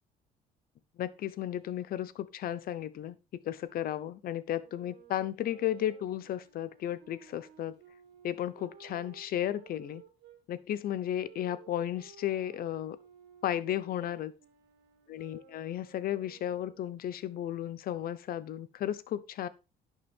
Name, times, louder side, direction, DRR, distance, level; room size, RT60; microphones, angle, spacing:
voice 1, 1.0-7.8 8.2-10.0 10.5-13.0 13.4-14.3 15.1-19.5, left 11 dB, 60° left, 0.9 m, -34 dB
Wind instrument woodwind instrument, 4.5-10.4 11.2-16.9, right 8 dB, 85° right, 2.4 m, -57 dB
11.0 x 7.2 x 3.6 m
cardioid pair, 110°, 17 cm